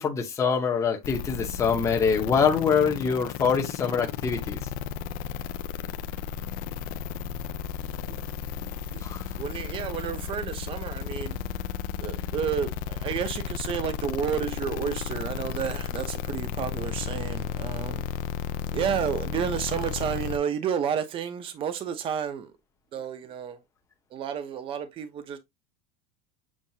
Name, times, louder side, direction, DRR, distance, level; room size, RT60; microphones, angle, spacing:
voice 1, 0.0-4.6 9.0-9.2, left 6 dB, 15° left, 0.8 m, -24 dB
sound 1, 1.0-20.4, left 8 dB, 45° left, 0.4 m, -34 dB
voice 2, 9.4-11.4 12.0-18.0 18.7-22.5 22.9-23.6 24.1-25.4, right 8 dB, 25° right, 0.6 m, -31 dB
7.2 x 2.4 x 2.7 m
cardioid pair, 165°, 21 cm